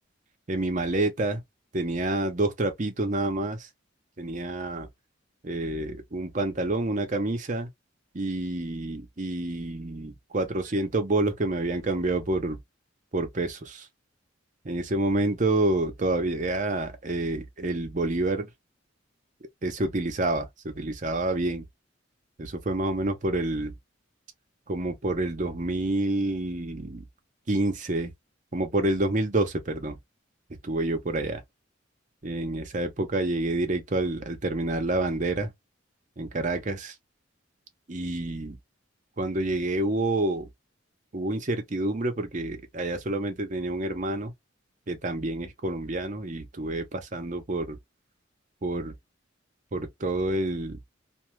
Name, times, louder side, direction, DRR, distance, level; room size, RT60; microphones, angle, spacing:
voice 1, 0.5-1.4 1.7-3.7 4.2-4.9 5.4-7.7 8.1-12.6 13.1-13.9 14.6-18.5 19.6-21.7 22.4-23.8 24.7-27.0 27.5-28.1 28.5-30.0 30.6-31.4 32.2-35.5 36.2-37.0 37.9-38.6 39.2-40.5 41.1-44.3 44.9-47.8 48.6-48.9 49.7-50.8, right 2 dB, 40° right, 0.7 m, -28 dB
2.6 x 2.3 x 3.0 m
head